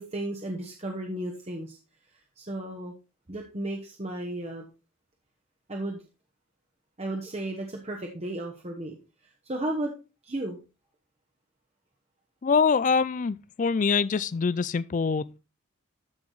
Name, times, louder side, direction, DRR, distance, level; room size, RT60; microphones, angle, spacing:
voice 1, 0.0-1.8 2.4-2.9 3.3-4.6 5.7-6.0 7.0-9.0 9.4-9.9 10.2-10.6, right 1 dB, 30° right, 1.1 m, -34 dB
voice 2, 12.4-15.4, left 5 dB, 35° left, 0.3 m, -24 dB
13.0 x 4.9 x 3.9 m
head